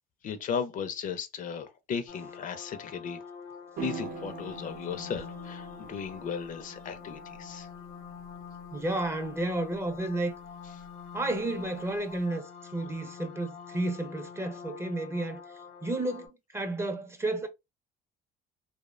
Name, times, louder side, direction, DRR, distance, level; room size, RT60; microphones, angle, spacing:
voice 1, 0.2-3.2 3.8-7.7, left 6 dB, 50° left, 0.4 m, -36 dB
sound 1, 2.1-16.3, left 6 dB, 80° left, 0.7 m, -46 dB
sound 2, 3.8-12.2, right 6 dB, 60° right, 0.6 m, -45 dB
voice 2, 8.7-10.3 11.1-12.5 12.7-15.4 15.8-17.5, right 2 dB, 15° right, 0.5 m, -31 dB
2.6 x 2.1 x 2.3 m
cardioid pair, 110°, 17 cm